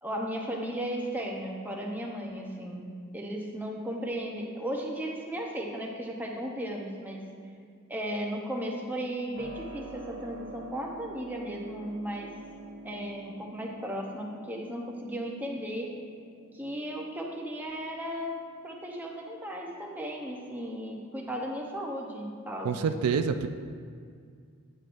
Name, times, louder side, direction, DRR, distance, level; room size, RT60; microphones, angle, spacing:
voice 1, 0.0-2.9 3.1-7.2 7.9-12.3 12.8-15.9 16.5-18.3 18.6-22.7, equal, 10° right, -1 dB, 0.7 m, -35 dB
Keyboard (musical), 9.4-22.1, right 2 dB, 60° right, 0.7 m, -50 dB
voice 2, 22.6-23.5, right 6 dB, 80° right, 8 dB, 0.4 m, -27 dB
8.4 x 7.6 x 2.5 m, 2.2 s
head